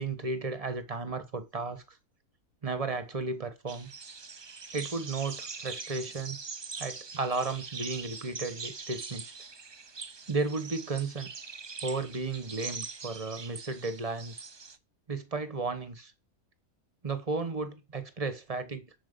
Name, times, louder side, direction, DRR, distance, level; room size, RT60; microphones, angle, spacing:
voice 1, 0.0-2.0 2.6-3.9 4.7-6.4 6.8-9.3 10.3-11.3 11.8-14.4 15.1-16.1 17.0-18.9, right 3 dB, 25° right, 1.2 m, -34 dB
sound 1, 3.7-14.8, right 4 dB, 45° right, 0.3 m, -42 dB
11.0 x 4.8 x 6.8 m
omnidirectional pair, 1.5 m